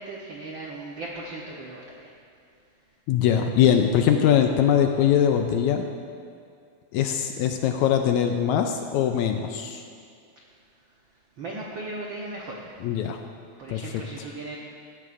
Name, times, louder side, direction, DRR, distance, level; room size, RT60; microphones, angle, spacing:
voice 1, 0.0-2.1 11.4-12.6 13.6-14.6, right 2 dB, 80° right, -3 dB, 1.1 m, -37 dB
voice 2, 3.1-5.8 6.9-9.8 12.8-13.2 13.7-13.9, left 9 dB, 80° left, 5 dB, 1.8 m, -22 dB
16.0 x 13.5 x 2.5 m, 2.3 s
omnidirectional pair, 3.7 m